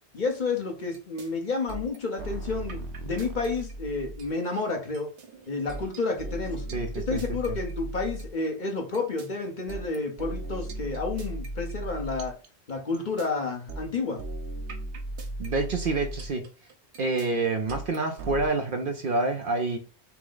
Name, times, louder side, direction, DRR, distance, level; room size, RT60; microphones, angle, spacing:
voice 1, 0.1-5.1 5.5-6.6 6.9-12.3 12.7-14.2, left 3 dB, 45° left, 1.0 m, -30 dB
sound 1, 0.9-1.3 1.7-4.5 4.9-8.5 8.9-13.3 13.7-18.5, right 1 dB, 80° right, 1.1 m, -37 dB
voice 2, 6.7-7.2 15.4-16.5 17.0-19.8, right 3 dB, 60° right, 0.7 m, -27 dB
5.8 x 2.0 x 3.8 m
omnidirectional pair, 1.1 m